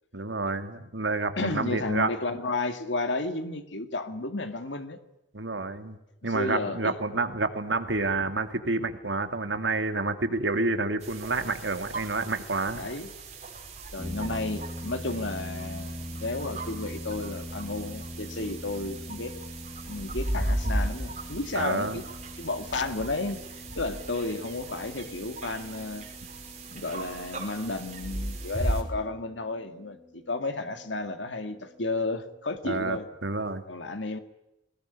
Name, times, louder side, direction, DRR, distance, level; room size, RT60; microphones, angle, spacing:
voice 1, 0.1-2.1 5.3-6.0 6.2-12.9 21.5-22.0 32.6-33.6, right 3 dB, 85° right, 8 dB, 2.5 m, -29 dB
voice 2, 1.4-5.0 6.3-6.9 12.7-13.1 13.9-19.3 19.9-22.0 22.4-23.4 23.8-26.1 26.7-33.0 33.7-34.2, left 2 dB, 85° left, 8 dB, 2.0 m, -32 dB
sound 1, 11.0-28.8, right 1 dB, 40° right, 5.7 m, -36 dB
sound 2, 14.0-32.4, left 1 dB, 5° left, 4.2 m, -43 dB
22.0 x 20.0 x 10.0 m, 0.88 s
head